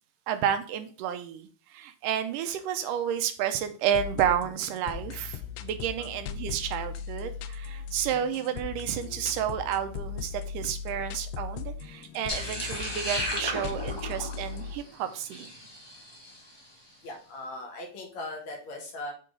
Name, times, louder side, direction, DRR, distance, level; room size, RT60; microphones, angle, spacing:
voice 1, 0.3-15.5, right 9 dB, 85° right, 9 dB, 2.2 m, -31 dB
sound 1, 3.9-14.8, left 7 dB, 85° left, 2.2 m, -38 dB
sound 2, 12.3-16.6, equal, 40° left, 0.3 m, -35 dB
voice 2, 17.0-19.1, left 2 dB, 60° left, 0 dB, 2.7 m, -39 dB
7.6 x 3.8 x 3.8 m, 0.39 s
omnidirectional pair, 3.8 m